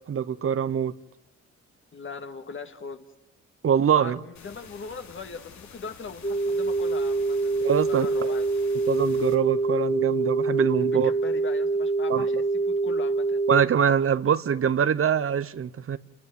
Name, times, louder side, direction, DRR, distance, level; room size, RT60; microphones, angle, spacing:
voice 1, 0.1-0.9 3.6-4.2 7.6-8.3 8.9-11.1 12.1-12.3 13.5-16.0, right 8 dB, 45° right, 1.0 m, -24 dB
voice 2, 1.9-3.1 3.9-8.5 10.9-13.4, left 5 dB, 40° left, 2.4 m, -40 dB
sound 1, 4.4-9.4, left 6 dB, 65° left, 3.4 m, -48 dB
sound 2, 6.2-13.6, right 3 dB, 25° left, 1.6 m, -25 dB
28.0 x 19.5 x 9.5 m
cardioid pair, 90°, 30 cm